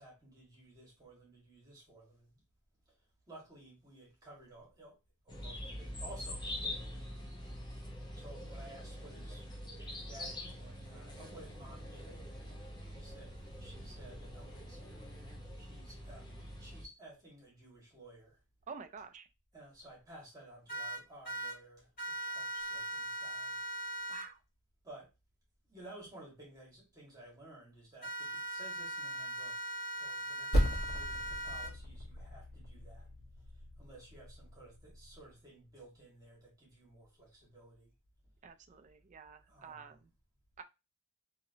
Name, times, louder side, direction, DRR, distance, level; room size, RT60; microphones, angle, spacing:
voice 1, 0.0-2.3 2.9-3.0 3.3-5.0 5.2-6.9 8.2-9.5 9.8-12.3 12.9-15.1 15.6-18.4 19.5-23.6 24.8-25.1 25.7-29.6 30.0-33.1 33.8-37.9 39.5-40.0, right 1 dB, 15° right, 1.5 m, -55 dB
sound 1, 5.3-16.9, left 1 dB, 20° left, 0.7 m, -45 dB
voice 2, 18.7-19.3 24.1-24.4 38.4-40.1 40.6-40.7, right 5 dB, 35° right, 0.3 m, -49 dB
sound 2, 20.7-21.5 22.0-24.2 28.0-31.7, right 2 dB, 40° left, 1.6 m, -40 dB
Percussion, 30.5-35.4, equal, 65° left, 1.2 m, -36 dB
2.9 x 2.8 x 2.7 m
head